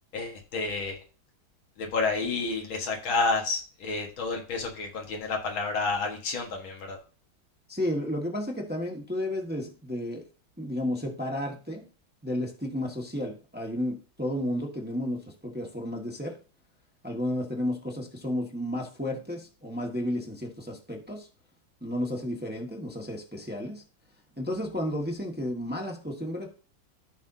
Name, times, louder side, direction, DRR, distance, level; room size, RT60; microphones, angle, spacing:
voice 1, 0.1-1.0 1.8-7.0, left 3 dB, 80° left, 2 dB, 2.3 m, -30 dB
voice 2, 7.7-10.2 10.6-11.8 12.2-16.4 17.0-21.3 21.8-23.8 24.4-26.5, left 1 dB, 5° right, 0 dB, 1.3 m, -32 dB
14.0 x 5.6 x 2.7 m, 0.36 s
omnidirectional pair, 2.2 m